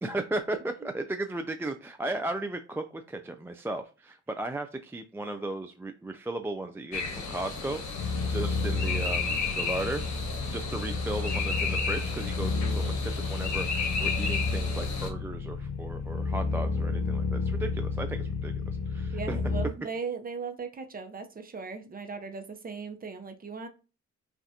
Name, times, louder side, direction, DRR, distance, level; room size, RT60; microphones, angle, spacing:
voice 1, 0.0-7.8 8.3-10.0 10.5-19.4, right 2 dB, 10° right, 6 dB, 0.3 m, -35 dB
sound 1, 6.9-15.1, left 4 dB, 65° left, 1.3 m, -33 dB
sound 2, 8.0-19.7, left 3 dB, 80° left, 0.7 m, -31 dB
voice 2, 19.1-23.7, right 5 dB, 30° right, 6 dB, 0.8 m, -38 dB
5.6 x 2.5 x 2.8 m, 0.33 s
cardioid pair, 90°, 30 cm